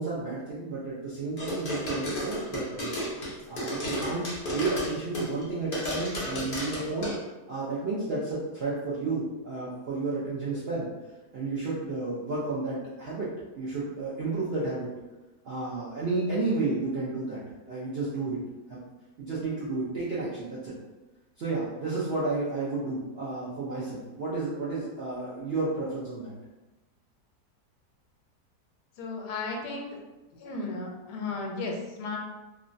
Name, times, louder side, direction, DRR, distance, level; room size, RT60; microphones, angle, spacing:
voice 1, 0.0-3.0 3.5-4.2 4.5-7.2 7.5-10.9 11.3-13.3 13.5-14.9 15.4-17.4 17.7-18.4 18.7-18.8 19.2-20.7 21.4-26.3, right 3 dB, 65° right, -8 dB, 0.6 m, -31 dB
sound 1, 1.4-5.4 5.7-7.2, equal, 50° left, 0.6 m, -33 dB
voice 2, 29.0-29.9 30.3-32.2, left 3 dB, 90° left, 1 dB, 1.2 m, -34 dB
2.9 x 2.2 x 2.5 m, 1.1 s
omnidirectional pair, 1.7 m